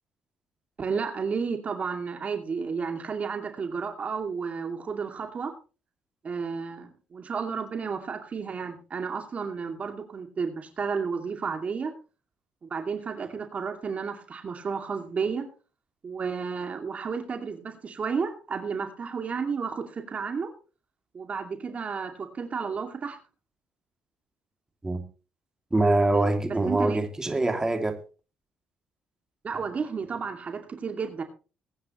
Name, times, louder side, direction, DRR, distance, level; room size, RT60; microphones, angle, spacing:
voice 1, 0.8-5.5 6.2-11.9 12.7-15.4 16.0-20.5 21.1-23.2 26.1-26.3 26.7-27.0 29.4-31.2, right 5 dB, 45° right, 2.4 m, -32 dB
voice 2, 25.7-28.0, right 2 dB, 20° right, 2.7 m, -24 dB
21.5 x 9.6 x 3.1 m
supercardioid pair, 65°, 3 cm